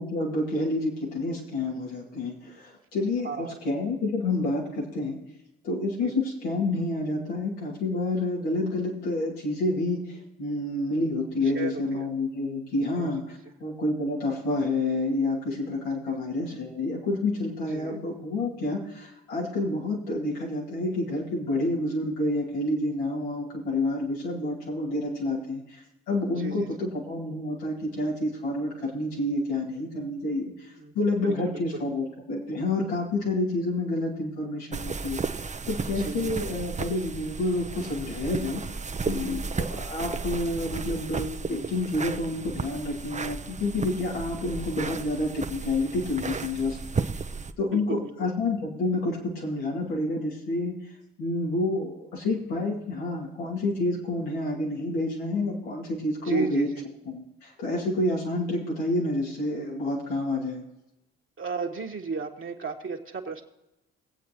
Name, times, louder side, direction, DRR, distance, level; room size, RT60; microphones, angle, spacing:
voice 1, 0.0-5.2 5.6-13.2 13.6-25.8 26.1-30.5 30.9-35.2 35.7-38.6 39.1-47.1 47.6-50.7 51.2-56.7 57.1-60.6, left 2 dB, 85° left, -4 dB, 2.4 m, -29 dB
voice 2, 3.2-3.6 6.0-6.1 11.4-12.1 13.0-13.1 16.1-16.2 17.7-18.0 26.3-26.8 30.8-30.9 31.2-31.8 35.9-36.5 47.7-48.3 56.2-56.7 61.4-63.4, right 4 dB, 35° right, 1 dB, 1.4 m, -34 dB
sound 1, 34.7-47.5, right 4 dB, 20° right, 0.6 m, -34 dB
20.5 x 8.3 x 3.0 m, 0.92 s
hypercardioid pair, 45°, 34 cm